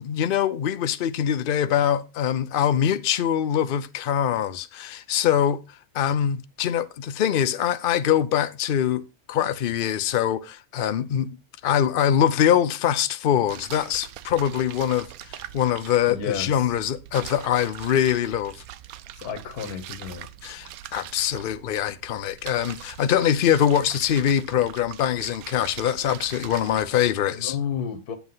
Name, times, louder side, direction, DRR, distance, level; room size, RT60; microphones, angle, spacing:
voice 1, 0.0-5.6 5.9-9.0 9.3-11.4 11.6-15.1 15.5-18.5 20.4-27.6, left 10 dB, 60° left, 0.5 m, -23 dB
sound 1, 13.5-27.0, right 12 dB, 75° right, 1.0 m, -42 dB
voice 2, 16.1-16.7 19.1-20.3 27.3-28.2, left 7 dB, 85° left, 1.6 m, -31 dB
8.1 x 7.5 x 3.9 m
omnidirectional pair, 1.6 m